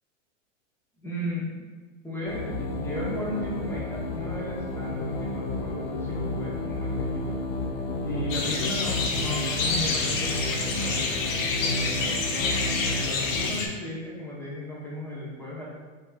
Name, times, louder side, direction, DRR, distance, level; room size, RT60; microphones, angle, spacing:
voice 1, 1.0-1.6 2.0-7.4 8.0-15.6, left 1 dB, 5° left, -6 dB, 0.8 m, -35 dB
sound 1, 2.3-13.5, left 2 dB, 40° left, 0.4 m, -32 dB
sound 2, 8.3-13.7, left 3 dB, 80° left, 0.7 m, -28 dB
3.5 x 2.9 x 2.3 m, 1.3 s
hypercardioid pair, 125°, 38 cm